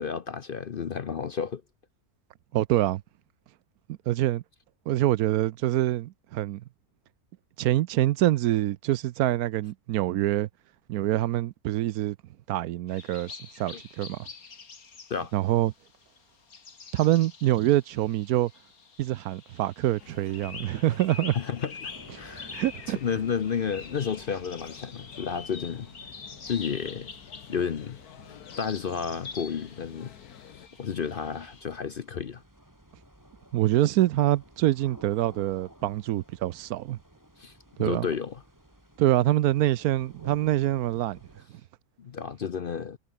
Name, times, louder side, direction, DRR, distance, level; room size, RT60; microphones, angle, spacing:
voice 1, 0.0-1.6 13.7-13.8 15.1-15.3 21.3-22.5 22.9-25.9 26.5-27.1 27.5-28.0 28.6-30.1 30.8-32.4 37.4-37.5 37.8-38.4 42.0-43.0, left 6 dB, 50° left, 0.7 m, -31 dB
voice 2, 2.5-3.0 4.1-4.4 4.9-6.6 7.6-10.5 10.9-12.2 12.5-14.2 15.3-15.7 16.9-18.5 19.0-21.4 22.5-23.0 33.5-37.0 37.8-38.0 39.0-41.2, right 14 dB, 80° right, 1.1 m, -25 dB
sound 1, 12.9-31.6, left 5 dB, 70° left, 2.7 m, -46 dB
sound 2, 20.0-30.7, left 10 dB, 90° left, 1.6 m, -50 dB
sound 3, 21.9-41.5, equal, 10° right, 5.9 m, -55 dB
omnidirectional pair, 1.6 m